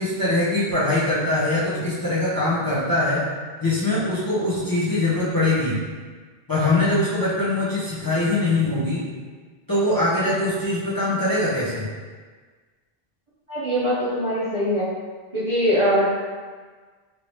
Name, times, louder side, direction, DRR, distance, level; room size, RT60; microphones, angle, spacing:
voice 1, 0.0-3.2 3.6-5.8 6.5-9.0 9.7-11.9, left 2 dB, 25° left, -10 dB, 0.6 m, -22 dB
voice 2, 13.5-14.9 15.3-16.2, equal, 35° right, -9 dB, 0.6 m, -22 dB
3.1 x 2.7 x 3.1 m, 1.5 s
omnidirectional pair, 1.0 m